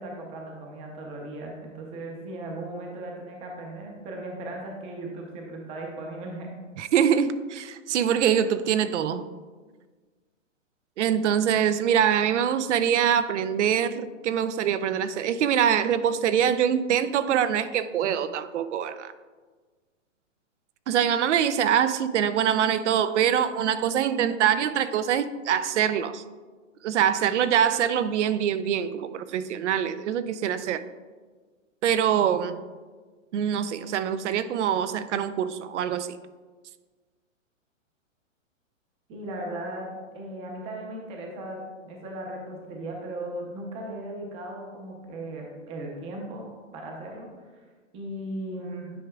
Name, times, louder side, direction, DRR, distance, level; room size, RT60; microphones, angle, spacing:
voice 1, 0.0-6.5 39.1-46.5 46.7-47.5 47.9-48.9, right 1 dB, 15° right, 0 dB, 0.7 m, -37 dB
voice 2, 6.8-9.2 11.0-19.1 20.9-26.2 26.8-30.8 31.8-32.6 33.3-36.2, right 9 dB, 60° right, 13 dB, 0.5 m, -24 dB
9.7 x 4.8 x 2.3 m, 1.4 s
hypercardioid pair, 150°, 40 cm